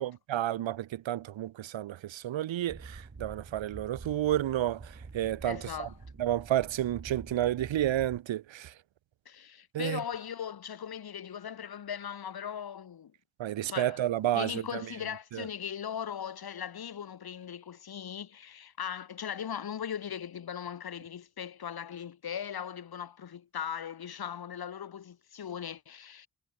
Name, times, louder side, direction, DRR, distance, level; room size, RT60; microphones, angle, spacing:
voice 1, 0.0-5.9 6.2-8.7 9.7-10.0 13.4-14.6 15.3-15.5, right 12 dB, 75° right, 1.1 m, -31 dB
sound 1, 2.7-8.2, right 3 dB, 35° right, 4.6 m, -47 dB
voice 2, 5.4-6.0 9.2-13.1 13.7-14.0 14.3-26.3, left 8 dB, 50° left, 1.3 m, -39 dB
supercardioid pair, 45°, 47 cm